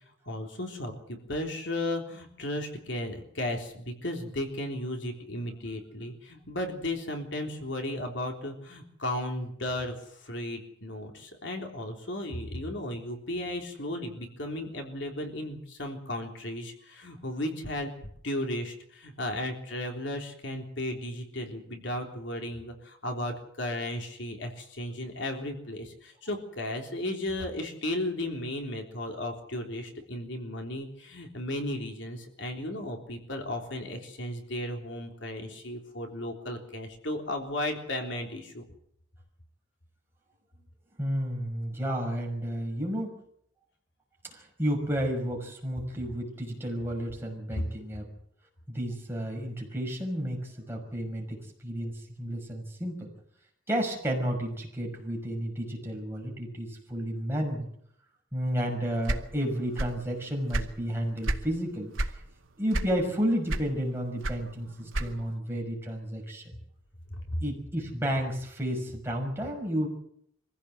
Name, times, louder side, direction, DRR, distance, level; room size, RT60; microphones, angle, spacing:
voice 1, 0.3-17.9 18.2-38.6 67.3-67.4, left 1 dB, 60° left, 3 dB, 3.5 m, -35 dB
voice 2, 41.0-43.2 44.2-48.0 48.7-51.4 51.6-53.1 53.7-57.7 58.3-61.9 62.6-66.5 67.4-69.9, equal, 10° right, -1 dB, 6.0 m, -32 dB
sound 1, 59.0-60.1 60.3-61.5 61.9-62.2 62.7-63.2 63.5-65.4, right 1 dB, 75° right, 2.2 m, -30 dB
24.5 x 16.0 x 8.0 m, 0.68 s
head